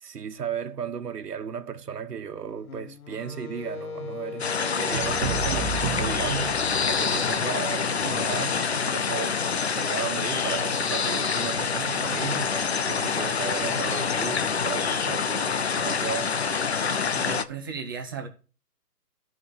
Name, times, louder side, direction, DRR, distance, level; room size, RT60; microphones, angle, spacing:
voice 1, 0.0-6.6 6.9-9.4 9.7-12.6 12.9-16.3, right 7 dB, 75° right, 1.4 m, -35 dB
Wind instrument woodwind instrument, 2.6-6.9, left 5 dB, 65° left, 1.1 m, -40 dB
sound 1, 4.4-17.4, left 6 dB, 45° left, 0.7 m, -26 dB
sound 2, 4.9-7.2, right 5 dB, 35° right, 1.8 m, -31 dB
voice 2, 17.1-18.3, right 5 dB, 15° right, 0.9 m, -35 dB
12.5 x 5.1 x 4.2 m
hypercardioid pair, 165°, 47 cm